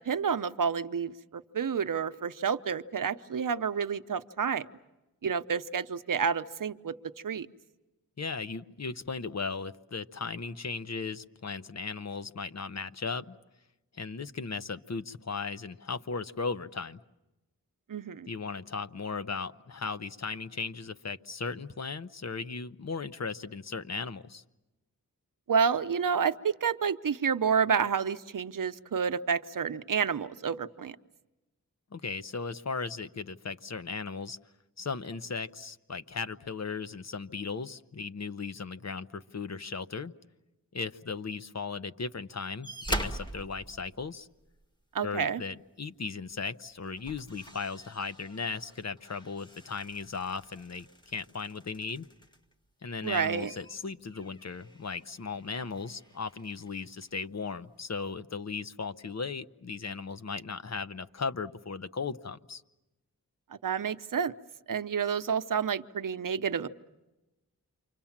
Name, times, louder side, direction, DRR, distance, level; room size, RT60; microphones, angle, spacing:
voice 1, 0.0-4.6 5.2-6.9 7.2-7.5 17.9-18.3 25.5-31.0 44.9-45.4 53.0-53.5 63.5-64.3 64.7-66.7, right 6 dB, 65° right, 11 dB, 0.8 m, -29 dB
voice 2, 8.2-13.4 13.9-17.0 18.3-24.4 31.9-34.4 34.8-40.1 40.7-44.3 45.0-52.1 52.8-62.6, left 4 dB, 50° left, 12 dB, 0.9 m, -37 dB
sound 1, 42.6-44.6 46.2-46.4 46.8-52.5 52.9-57.1 58.0-58.1, equal, 10° left, 1.8 m, -43 dB
29.0 x 25.0 x 7.3 m, 1.0 s
wide cardioid pair, 65°, 35 cm